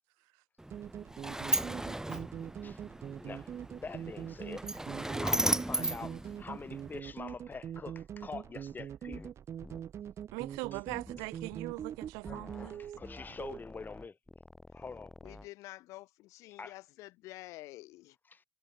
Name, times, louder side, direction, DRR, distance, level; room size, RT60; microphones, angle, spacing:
Sliding door, 0.6-7.0, right 1 dB, 10° right, 2.4 m, -35 dB
sound 1, 0.7-13.6, right 9 dB, 60° right, 2.5 m, -43 dB
voice 1, 3.2-9.3 12.2-14.2 14.7-15.1 16.6-16.7 18.3-18.4, left 4 dB, 35° left, 2.6 m, -45 dB
sound 2, 9.1-9.3 9.6-9.8 10.9-11.6 12.3-12.7 13.0-15.5, left 1 dB, 10° left, 3.7 m, -50 dB
voice 2, 10.3-12.8, right 30 dB, 85° right, 2.0 m, -40 dB
voice 3, 15.2-18.2, left 18 dB, 80° left, 4.1 m, -49 dB
hypercardioid pair, 55°, 5 cm